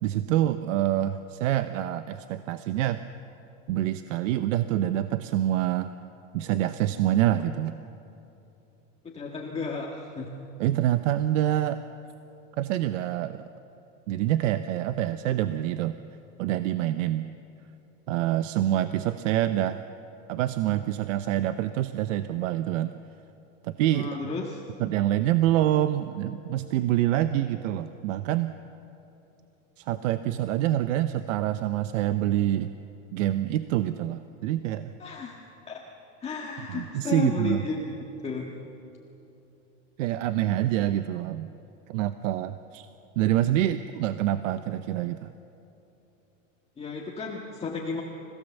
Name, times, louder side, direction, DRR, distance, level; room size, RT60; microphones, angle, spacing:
voice 1, 0.0-3.0 3.7-5.9 6.3-7.8 10.6-11.8 12.6-13.5 14.1-16.0 16.4-17.3 18.1-19.8 20.3-22.9 23.6-24.1 24.8-28.5 29.8-32.7 33.1-34.9 36.7-37.6 40.0-41.5 41.9-42.9 43.2-45.3, right 13 dB, 75° right, 11 dB, 0.8 m, -26 dB
voice 2, 9.1-10.3 23.9-24.6 35.0-35.4 35.7-35.8 36.2-38.5 46.8-48.0, left 4 dB, 15° left, -2 dB, 1.7 m, -33 dB
27.0 x 16.5 x 7.2 m, 2.9 s
supercardioid pair, 140°, 39 cm